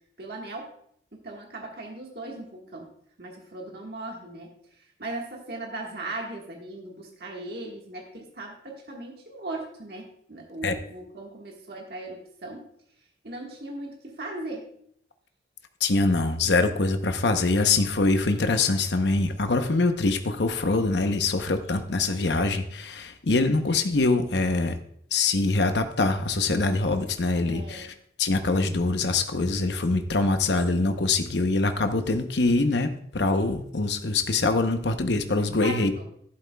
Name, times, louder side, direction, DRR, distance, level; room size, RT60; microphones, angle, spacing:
voice 1, 0.2-0.7 1.1-2.9 3.2-12.7 13.2-14.7 27.5-27.9 35.6-36.0, right 2 dB, 60° right, 0 dB, 1.6 m, -38 dB
voice 2, 15.8-24.8 25.1-32.9 33.1-35.9, left 3 dB, 75° left, 7 dB, 0.9 m, -24 dB
11.5 x 11.0 x 2.3 m, 0.65 s
head